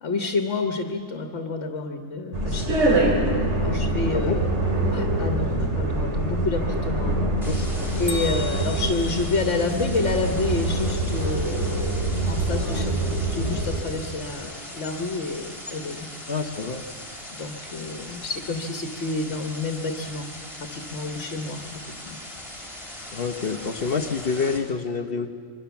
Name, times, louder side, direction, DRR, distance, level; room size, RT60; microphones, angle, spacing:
voice 1, 0.0-3.2 3.6-4.5 4.9-7.7 8.0-16.1 17.3-20.3 20.6-22.2, left 3 dB, 70° left, 5 dB, 1.5 m, -29 dB
sound 1, 2.3-13.8, right 2 dB, 65° right, 3.1 m, -25 dB
sound 2, 7.4-24.6, left 1 dB, 25° left, 3.8 m, -40 dB
Bell, 8.1-10.1, left 2 dB, 15° right, 2.0 m, -37 dB
voice 2, 16.3-16.8 23.1-25.3, left 5 dB, 50° left, 6 dB, 1.1 m, -27 dB
25.0 x 22.5 x 7.1 m, 2.1 s
omnidirectional pair, 1.3 m